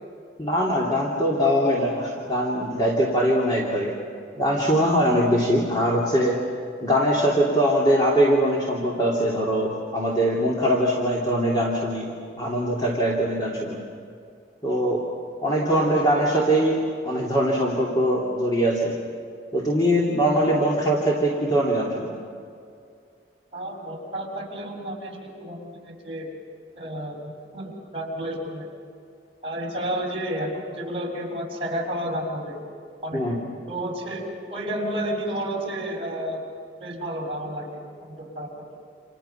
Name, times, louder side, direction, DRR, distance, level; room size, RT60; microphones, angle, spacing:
voice 1, 0.4-4.0 4.4-6.4 6.8-12.1 12.4-13.8 14.6-15.0 15.4-18.9 19.5-22.1 33.1-33.4, equal, 25° left, -4 dB, 2.9 m, -22 dB
voice 2, 23.5-26.3 26.8-27.2 27.5-28.7 29.4-32.6 33.0-33.3 33.6-34.2 34.5-36.4 36.8-38.8, right 1 dB, 30° right, -2 dB, 6.0 m, -31 dB
29.5 x 28.0 x 5.8 m, 2.3 s
head